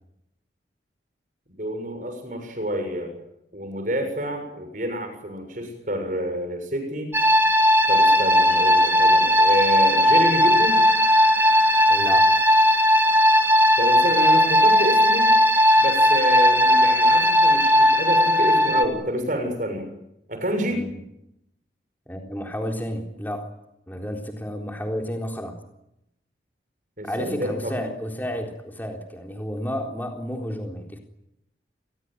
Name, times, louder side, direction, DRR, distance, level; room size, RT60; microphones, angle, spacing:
voice 1, 1.5-3.1 3.5-7.1 7.9-10.8 13.8-15.3 15.8-19.9 20.3-20.8 27.0-27.9, equal, 45° right, 6 dB, 7.1 m, -28 dB
sound 1, 7.1-18.9, equal, 10° right, 2.2 m, -17 dB
voice 2, 11.9-12.3 20.7-20.9 22.1-23.5 23.9-25.6 27.0-31.0, equal, 10° left, 2 dB, 3.8 m, -31 dB
28.5 x 21.5 x 9.3 m, 0.84 s
head